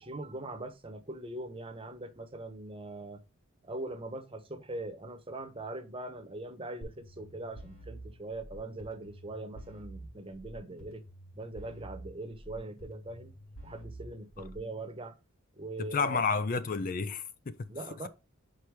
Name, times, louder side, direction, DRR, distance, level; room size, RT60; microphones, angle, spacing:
voice 1, 0.0-3.2 3.6-11.0 11.3-13.3 13.6-15.1 15.6-16.2 17.7-18.1, right 2 dB, 25° right, 1.0 m, -41 dB
sound 1, 6.8-14.8, right 1 dB, 80° left, 4.8 m, -49 dB
voice 2, 15.8-17.5, left 4 dB, 40° left, 0.4 m, -30 dB
6.5 x 4.4 x 4.6 m
head